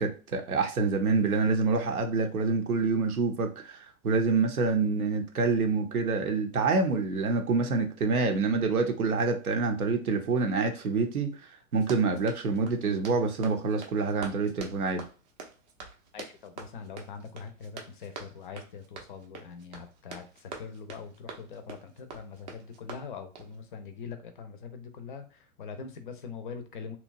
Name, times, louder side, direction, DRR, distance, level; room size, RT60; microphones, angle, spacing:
voice 1, 0.0-15.1, right 4 dB, 75° right, 4 dB, 0.7 m, -27 dB
Run, 11.7-23.6, right 4 dB, 30° right, 0.5 m, -46 dB
voice 2, 16.1-27.0, left 5 dB, 35° left, 9 dB, 0.5 m, -43 dB
2.8 x 2.2 x 2.5 m, 0.33 s
figure-of-eight pair, 110°, 43 cm